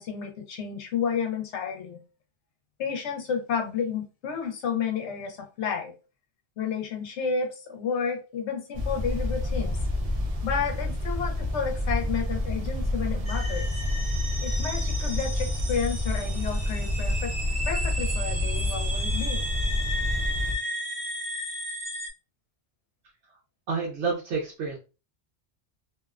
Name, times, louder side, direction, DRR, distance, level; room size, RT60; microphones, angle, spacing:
voice 1, 0.0-2.0 2.8-5.9 6.6-9.8 10.4-13.7 14.4-17.3 17.7-19.5, left 6 dB, 80° left, 3 dB, 0.9 m, -31 dB
sound 1, 8.7-20.5, left 1 dB, 70° right, 0.3 m, -28 dB
sound 2, 13.2-22.1, equal, 45° right, 1.1 m, -34 dB
voice 2, 23.7-24.8, right 4 dB, 85° right, -2 dB, 0.9 m, -29 dB
2.5 x 2.0 x 2.3 m, 0.32 s
omnidirectional pair, 1.2 m